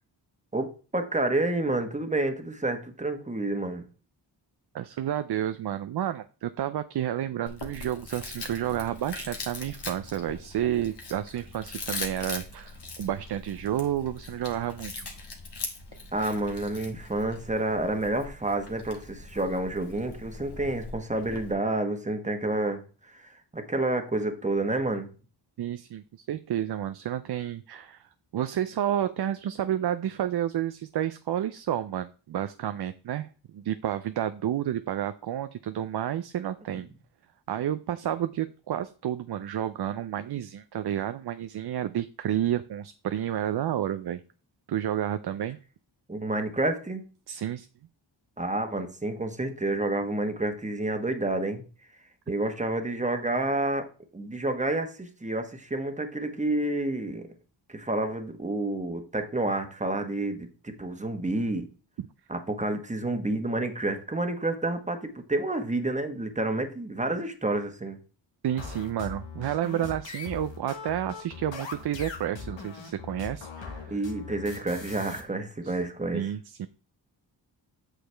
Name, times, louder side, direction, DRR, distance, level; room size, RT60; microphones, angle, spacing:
voice 1, 0.5-3.8 16.1-22.8 23.1-25.1 46.1-47.0 48.4-51.6 52.3-53.9 54.1-57.3 57.7-60.5 60.8-61.7 62.3-68.0 73.9-76.2, right 2 dB, 15° right, 6 dB, 1.3 m, -29 dB
voice 2, 4.7-15.1 25.6-28.1 28.3-36.9 37.5-44.2 44.7-45.6 47.3-47.7 62.0-62.1 68.4-74.0 75.6-75.8 76.1-76.7, right 11 dB, 60° right, 11 dB, 0.5 m, -30 dB
Chewing mastication, 7.5-21.5, left 3 dB, 65° left, 1.7 m, -41 dB
sound 1, 68.6-75.2, left 5 dB, 85° left, 1.6 m, -40 dB
8.1 x 6.2 x 3.4 m, 0.37 s
cardioid pair, 75°, 44 cm